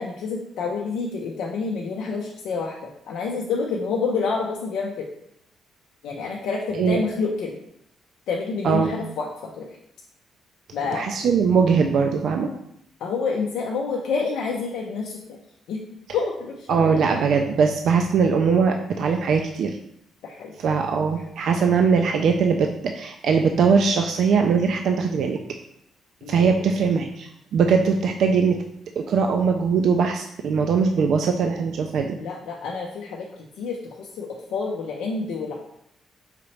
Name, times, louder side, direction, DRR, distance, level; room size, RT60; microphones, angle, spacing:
voice 1, 0.0-5.1 6.0-7.6 8.3-9.8 10.7-11.1 13.0-15.4 15.7-15.8 16.1-17.0 20.2-20.5 26.2-26.6 32.2-33.3 33.6-35.5, left 4 dB, 85° left, -2 dB, 0.5 m, -28 dB
voice 2, 8.6-8.9 10.9-12.5 16.7-19.8 20.6-25.4 26.3-28.6 29.0-32.2, right 5 dB, 70° right, 4 dB, 0.3 m, -21 dB
4.9 x 2.9 x 3.1 m, 0.76 s
cardioid pair, 90°, 0 cm